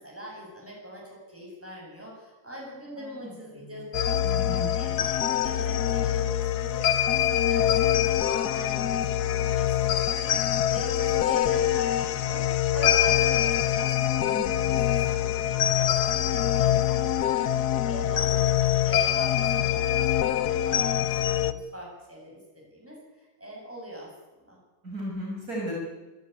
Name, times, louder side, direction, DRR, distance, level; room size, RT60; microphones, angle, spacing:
voice 1, 0.0-4.2 4.7-9.0 9.2-10.3 10.7-14.3 14.9-23.0 23.4-24.6, equal, 5° right, -2 dB, 8.0 m, -41 dB
voice 2, 3.0-3.3 4.2-4.7 14.3-14.8 24.8-25.8, equal, 40° right, -3 dB, 7.0 m, -35 dB
sound 1, 3.9-21.5, left 11 dB, 60° left, 1.2 m, -24 dB
26.0 x 13.5 x 9.5 m, 1.2 s
omnidirectional pair, 2.3 m